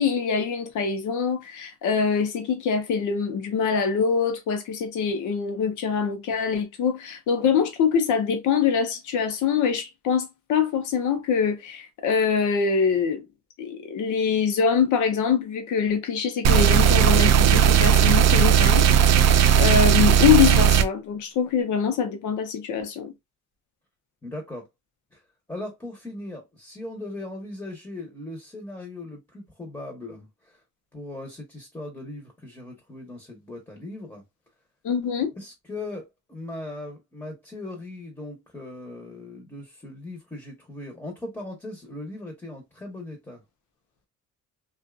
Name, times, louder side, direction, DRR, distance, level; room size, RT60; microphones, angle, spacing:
voice 1, 0.0-13.2 13.6-23.1 34.8-35.3, left 6 dB, 80° left, 0.8 m, -24 dB
sound 1, 16.4-20.8, right 8 dB, 60° right, 0.4 m, -17 dB
voice 2, 24.2-24.7 25.1-25.2 25.5-30.6 30.9-34.2 35.4-43.4, left 2 dB, 10° left, 1.0 m, -38 dB
2.6 x 2.4 x 2.3 m
cardioid pair, 90°, 30 cm